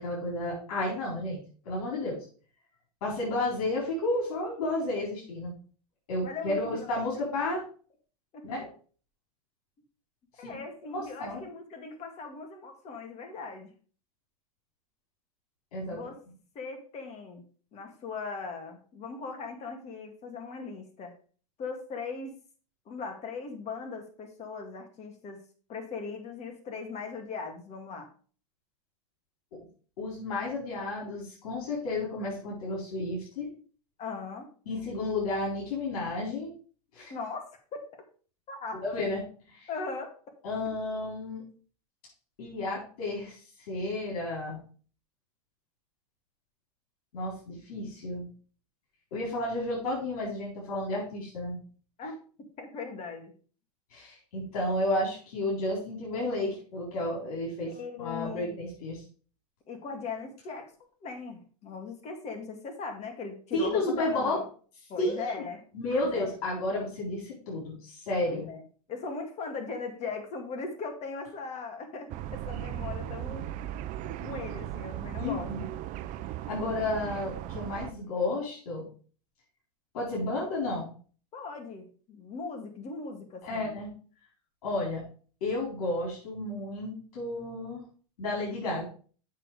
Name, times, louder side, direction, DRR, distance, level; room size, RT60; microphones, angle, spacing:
voice 1, 0.0-1.4 1.6-2.2 3.0-5.5 6.1-7.6 8.4-8.7 10.4-10.5 10.9-11.4 15.7-16.0 29.5-29.6 30.0-33.5 34.7-36.5 36.9-37.1 38.8-39.2 39.5-39.7 40.4-41.4 42.4-43.4 43.7-44.6 47.1-48.3 49.1-51.6 53.9-57.7 58.0-59.0 63.5-64.4 65.0-65.4 65.7-68.5 75.2-75.7 76.5-78.9 79.9-80.9 83.4-83.9 84.6-85.0 85.4-87.8 88.2-88.8, left 2 dB, 75° left, -4 dB, 4.3 m, -32 dB
voice 2, 6.2-7.0 8.3-8.5 10.4-13.7 15.8-16.2 16.6-17.4 17.7-21.1 21.6-22.3 22.9-25.4 25.7-28.1 34.0-34.5 37.1-38.0 38.5-38.8 39.7-40.1 52.0-52.1 52.6-53.3 57.7-58.8 59.7-60.7 61.0-64.4 64.9-65.6 65.9-66.4 68.3-68.6 68.9-73.4 73.9-75.5 81.3-83.7, left 4 dB, 35° left, 5 dB, 2.1 m, -39 dB
sound 1, 72.1-77.9, right 12 dB, 45° right, 0.6 m, -37 dB
7.5 x 6.3 x 4.8 m, 0.41 s
supercardioid pair, 120°, 19 cm